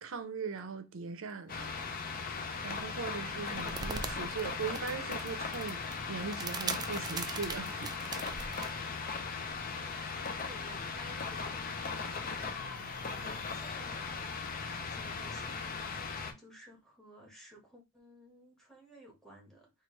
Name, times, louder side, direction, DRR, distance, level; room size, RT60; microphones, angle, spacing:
voice 1, 0.0-2.1 2.6-5.8 6.1-7.9, right 5 dB, 65° right, 0.6 m, -40 dB
sound 1, 1.5-16.3, left 4 dB, 40° left, 0.6 m, -38 dB
sound 2, 3.3-8.7, right 5 dB, 20° right, 0.3 m, -41 dB
voice 2, 8.8-9.5 10.4-14.1 14.6-19.7, equal, ahead, 1.3 m, -56 dB
4.6 x 2.4 x 3.1 m
head